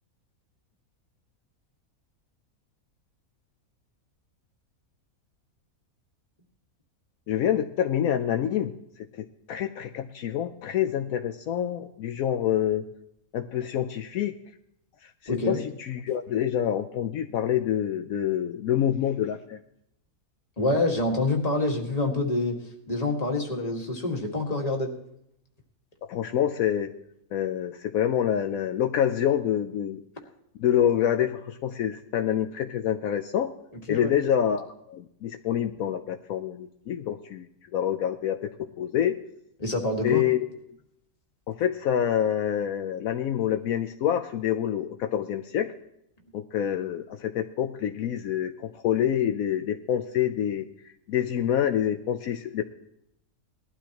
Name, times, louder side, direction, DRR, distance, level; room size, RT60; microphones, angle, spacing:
voice 1, 7.3-8.8 9.1-12.8 13.3-14.3 15.2-19.6 26.1-26.9 27.3-30.0 30.6-33.5 33.9-37.5 37.7-39.2 40.0-40.4 41.5-45.7 46.3-52.6, left 10 dB, 75° left, 5 dB, 1.1 m, -27 dB
voice 2, 15.3-15.6 20.6-22.6 22.9-24.9 33.9-34.1 39.6-40.2, left 2 dB, 25° left, 1 dB, 1.8 m, -26 dB
19.5 x 12.5 x 2.9 m, 0.78 s
omnidirectional pair, 1.5 m